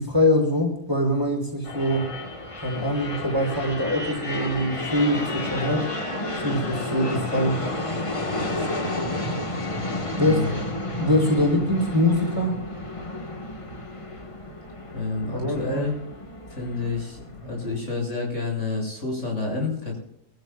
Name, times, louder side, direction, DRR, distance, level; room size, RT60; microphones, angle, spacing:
voice 1, 0.0-2.1 2.6-5.9 6.4-7.7 8.5-8.7 10.1-10.4 11.0-12.6 15.3-15.9, left 1 dB, 20° right, 0 dB, 4.0 m, -23 dB
sound 1, 1.6-17.8, left 2 dB, 25° left, 1.4 m, -32 dB
voice 2, 10.2-10.6 14.9-15.9 16.5-20.0, left 3 dB, 65° left, -1 dB, 7.4 m, -29 dB
24.5 x 14.5 x 2.4 m, 0.73 s
omnidirectional pair, 1.4 m